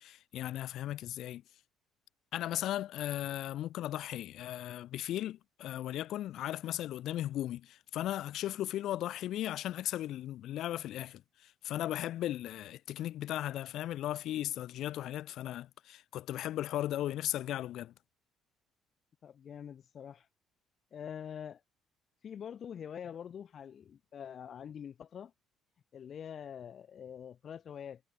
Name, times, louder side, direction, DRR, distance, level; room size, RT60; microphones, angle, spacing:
voice 1, 0.0-1.4 2.3-17.9, left 13 dB, 70° left, 6.3 m, -37 dB
voice 2, 19.2-20.3 20.9-21.6 22.2-25.3 25.9-28.0, left 8 dB, 50° left, 4.9 m, -45 dB
supercardioid pair, 75°, 0 cm